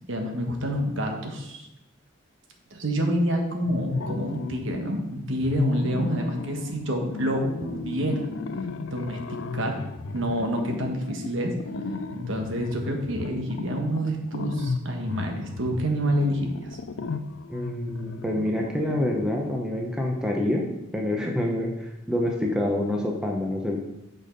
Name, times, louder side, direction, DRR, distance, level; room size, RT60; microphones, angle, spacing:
voice 1, 0.1-1.7 2.7-8.2 8.9-9.8 10.1-11.5 12.1-16.8, equal, 65° right, 3 dB, 1.2 m, -28 dB
sound 1, 3.7-5.0 5.4-19.3, left 3 dB, 65° left, 0.4 m, -34 dB
voice 2, 17.5-20.7 20.9-23.8, left 1 dB, 5° right, 0 dB, 0.8 m, -27 dB
6.3 x 5.3 x 5.2 m, 0.89 s
head